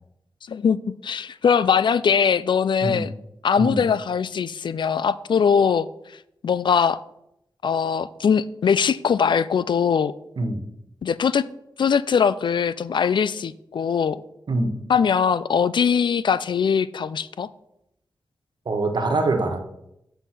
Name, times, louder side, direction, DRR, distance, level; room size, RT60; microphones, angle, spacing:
voice 1, 0.5-3.1 3.4-5.9 6.4-7.0 7.6-10.1 11.0-11.5 11.8-14.2 14.9-17.5, left 6 dB, 75° left, 17 dB, 0.4 m, -21 dB
voice 2, 18.6-19.6, right 2 dB, 65° right, 4 dB, 1.3 m, -23 dB
8.1 x 5.6 x 5.8 m, 0.81 s
wide cardioid pair, 85°, 8 cm